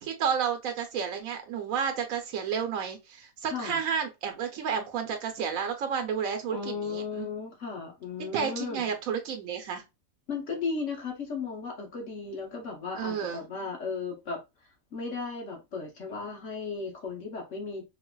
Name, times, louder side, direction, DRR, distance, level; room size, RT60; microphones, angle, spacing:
voice 1, 0.0-7.3 8.3-9.8 13.0-13.5, right 7 dB, 75° right, 1.2 m, -31 dB
voice 2, 3.5-3.8 6.5-8.8 10.3-14.4 14.9-17.8, left 4 dB, 65° left, 1.3 m, -35 dB
3.9 x 2.5 x 2.2 m
omnidirectional pair, 1.4 m